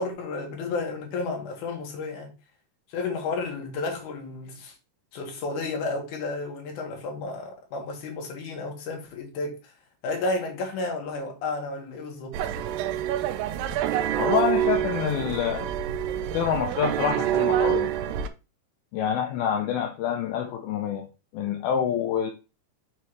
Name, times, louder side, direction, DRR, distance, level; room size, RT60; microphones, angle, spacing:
voice 1, 0.0-2.4 2.9-4.8 5.1-9.7 10.0-12.4, left 3 dB, 60° left, 2.8 m, -32 dB
sound 1, 12.3-18.3, right 11 dB, 90° right, 2.0 m, -26 dB
voice 2, 14.2-15.7 16.3-17.9 18.9-21.1 21.3-22.3, left 8 dB, 80° left, 2.5 m, -26 dB
6.5 x 3.4 x 4.5 m
omnidirectional pair, 4.6 m